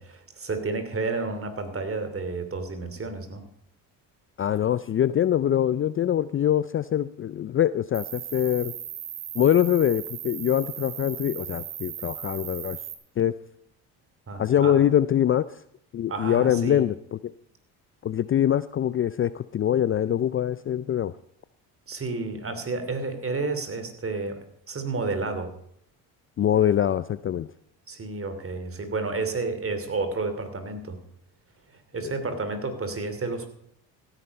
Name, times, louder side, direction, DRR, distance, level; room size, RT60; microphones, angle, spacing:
voice 1, 0.0-3.4 14.3-14.8 16.1-16.8 21.9-25.5 27.9-31.0 31.7-33.5, right 3 dB, 35° right, 9 dB, 2.9 m, -31 dB
voice 2, 4.4-8.7 9.3-12.8 13.2-13.4 14.3-15.4 15.9-17.3 18.0-21.1 26.4-27.5, left 10 dB, 30° left, 16 dB, 0.4 m, -23 dB
Cricket, 7.9-12.9, right 10 dB, 70° right, 2.6 m, -37 dB
15.5 x 10.0 x 5.3 m, 0.70 s
supercardioid pair, 75°, 40 cm